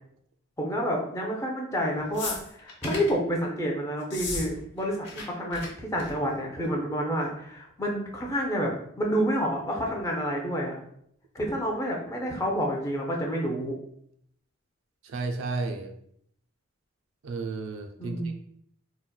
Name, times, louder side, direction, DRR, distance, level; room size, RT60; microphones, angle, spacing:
voice 1, 0.6-8.7 9.0-10.7 11.3-13.7 18.0-18.3, equal, 15° left, -1 dB, 0.4 m, -29 dB
sound 1, 2.1-3.2 4.0-4.5 4.7-5.2 5.5-5.7 6.0-6.3 7.2-7.3, left 3 dB, 55° left, 0.9 m, -35 dB
voice 2, 15.1-15.9 17.2-18.3, right 3 dB, 75° right, 5 dB, 0.4 m, -32 dB
3.8 x 2.1 x 2.2 m, 0.69 s
head